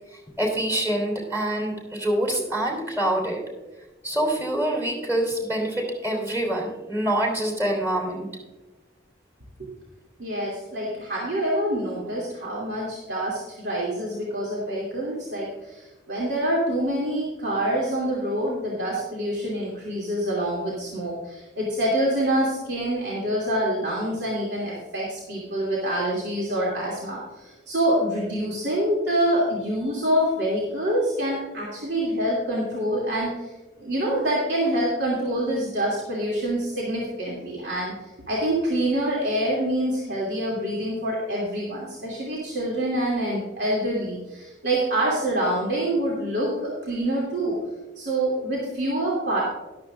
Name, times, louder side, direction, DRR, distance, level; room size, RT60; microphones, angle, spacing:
voice 1, 0.4-3.4 4.0-8.3, right 1 dB, 15° right, 1 dB, 3.2 m, -25 dB
voice 2, 10.2-33.5 33.8-37.9 38.3-47.6 48.0-49.4, right 1 dB, 70° right, -5 dB, 2.8 m, -26 dB
13.5 x 12.0 x 2.5 m, 1.2 s
head